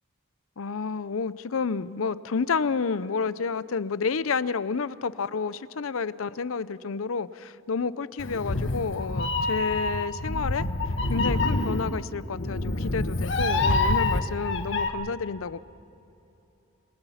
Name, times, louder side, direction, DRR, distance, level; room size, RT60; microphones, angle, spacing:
voice 1, 0.6-10.7 11.1-15.6, left 5 dB, 85° left, 17 dB, 0.6 m, -30 dB
Meow, 8.2-14.9, left 2 dB, 65° left, 1.3 m, -27 dB
28.0 x 21.0 x 5.7 m, 2.9 s
head